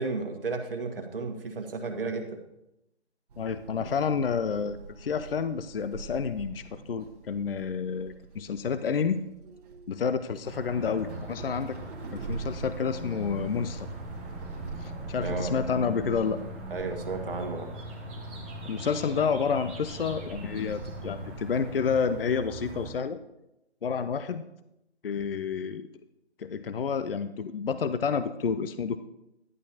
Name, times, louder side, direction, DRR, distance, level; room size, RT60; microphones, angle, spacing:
voice 1, 0.0-2.4 15.2-15.5 16.7-17.7, right 3 dB, 55° right, 5 dB, 1.5 m, -33 dB
Walk footsteps / Chatter / Hiss, 3.3-14.9, right 3 dB, 35° right, 1.4 m, -47 dB
voice 2, 3.4-9.2 9.9-11.8 12.1-13.9 14.8-16.4 18.7-23.2 23.8-24.4 25.0-25.9 26.4-29.0, left 6 dB, 55° left, 12 dB, 0.6 m, -29 dB
sound 1, 10.4-22.9, right 2 dB, 10° right, 0.7 m, -39 dB
11.5 x 11.0 x 2.8 m, 0.88 s
figure-of-eight pair, 150°, 34 cm